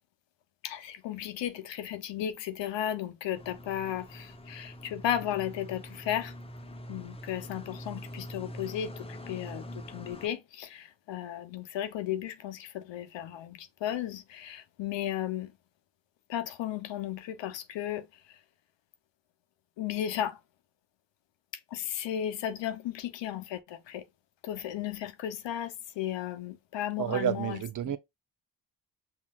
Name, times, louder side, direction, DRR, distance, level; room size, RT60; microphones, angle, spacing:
voice 1, 0.6-6.3 6.9-15.5 16.3-18.4 19.8-20.4 21.5-24.0 24.4-28.0, left 11 dB, 70° left, 0.8 m, -35 dB
sound 1, 3.3-10.3, equal, 15° left, 0.7 m, -44 dB
voice 2, 27.0-28.0, right 10 dB, 45° right, 0.6 m, -30 dB
5.6 x 2.7 x 2.3 m
supercardioid pair, 60°, 45 cm